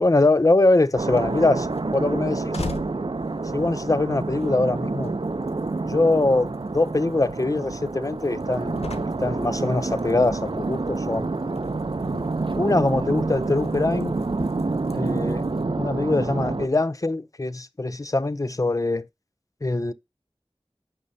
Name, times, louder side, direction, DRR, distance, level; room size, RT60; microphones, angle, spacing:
voice 1, 0.0-1.7 1.9-2.6 3.5-5.1 5.8-8.8 9.2-11.3 12.6-14.2 14.9-15.5 15.8-19.0 19.6-19.9, left 2 dB, 35° left, 0.4 m, -23 dB
sound 1, 0.9-15.6, left 3 dB, 85° left, 0.7 m, -43 dB
sound 2, 1.0-16.7, right 3 dB, 55° right, 0.5 m, -28 dB
8.6 x 5.3 x 2.7 m
wide cardioid pair, 40°, 10 cm